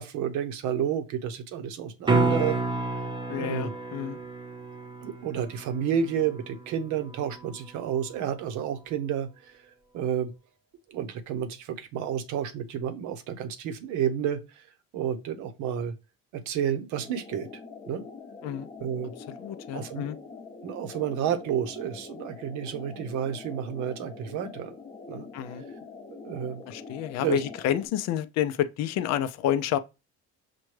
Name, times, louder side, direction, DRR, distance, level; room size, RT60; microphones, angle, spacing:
voice 1, 0.0-2.6 2.9-3.0 3.4-3.7 5.0-9.6 9.9-10.3 10.9-14.6 14.9-15.9 16.3-17.5 17.9-18.0 18.8-19.1 19.7-20.0 20.6-24.7 25.1-25.3 26.2-26.6 27.2-27.4, right 9 dB, 75° right, 0.9 m, -30 dB
sound 1, 2.0-8.1 12.8-12.9, right 3 dB, 15° right, 0.7 m, -31 dB
voice 2, 3.3-4.2 18.4-18.7 19.4-20.2 25.3-25.6 26.7-29.8, left 11 dB, 60° left, 0.5 m, -29 dB
sound 2, 17.0-27.9, left 4 dB, 25° left, 0.7 m, -44 dB
6.0 x 2.2 x 3.1 m
cardioid pair, 115°, 30 cm